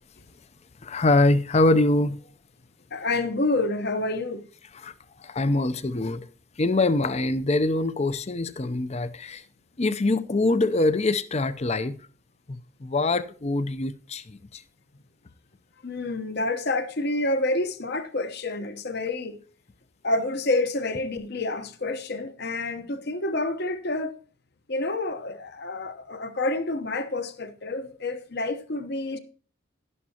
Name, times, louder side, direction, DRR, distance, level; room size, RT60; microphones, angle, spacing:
voice 1, 0.8-2.2 4.7-4.9 5.2-6.3 6.6-9.4 9.8-12.0 12.5-14.6, left 2 dB, 30° left, 0.5 m, -24 dB
voice 2, 2.9-4.4 15.8-19.4 20.0-24.1 24.7-29.2, left 2 dB, 50° left, 0.9 m, -28 dB
11.5 x 11.0 x 2.8 m
head